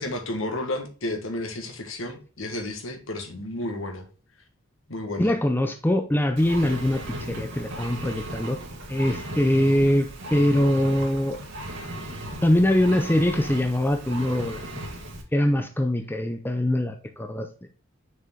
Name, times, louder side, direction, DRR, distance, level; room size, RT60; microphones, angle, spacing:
voice 1, 0.0-4.0 4.9-5.3, left 1 dB, 70° left, 5 dB, 1.5 m, -32 dB
voice 2, 5.2-8.6 8.9-11.4 12.4-14.6 15.3-17.5, left 1 dB, 10° left, 5 dB, 0.6 m, -23 dB
Engine, 6.4-15.2, right 1 dB, 65° right, 1.9 m, -36 dB
6.4 x 4.8 x 3.6 m, 0.36 s
head